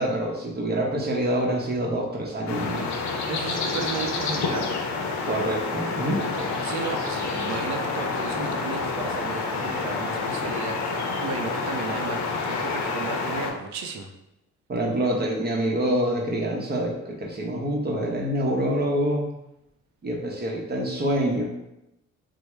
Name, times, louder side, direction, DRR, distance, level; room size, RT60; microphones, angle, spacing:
voice 1, 0.0-3.0 5.2-6.2 14.7-19.3 20.0-21.4, right 1 dB, 35° right, 0 dB, 0.7 m, -26 dB
sound 1, 2.5-13.5, left 4 dB, 65° left, 0.6 m, -28 dB
voice 2, 3.3-4.7 6.1-14.1, right 5 dB, 70° right, 5 dB, 0.5 m, -34 dB
3.3 x 2.0 x 3.1 m, 0.89 s
cardioid pair, 90°, 30 cm